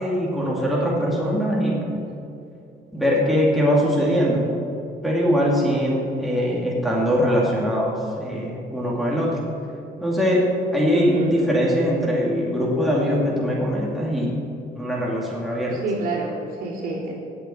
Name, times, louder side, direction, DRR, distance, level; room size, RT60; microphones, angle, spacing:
voice 1, 0.0-2.0 2.9-4.4 5.0-9.4 10.0-14.4 14.8-15.8, equal, ahead, -5 dB, 2.8 m, -22 dB
voice 2, 10.9-11.3 15.7-17.1, right 3 dB, 60° right, -3 dB, 3.1 m, -27 dB
18.0 x 7.2 x 4.7 m, 2.7 s
cardioid pair, 110°, 17 cm